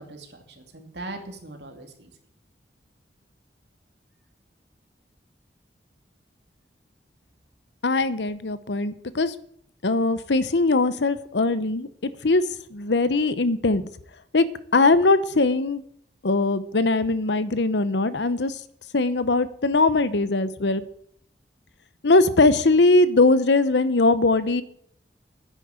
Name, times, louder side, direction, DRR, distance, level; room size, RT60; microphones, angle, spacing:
voice 1, 0.0-2.1, right 2 dB, 75° right, 4 dB, 2.5 m, -40 dB
voice 2, 7.8-9.3 9.8-12.4 12.7-13.8 14.3-14.4 14.7-15.8 16.2-18.6 18.9-20.8 22.0-24.6, left 3 dB, 80° left, 14 dB, 0.9 m, -21 dB
10.0 x 8.5 x 7.9 m, 0.66 s
head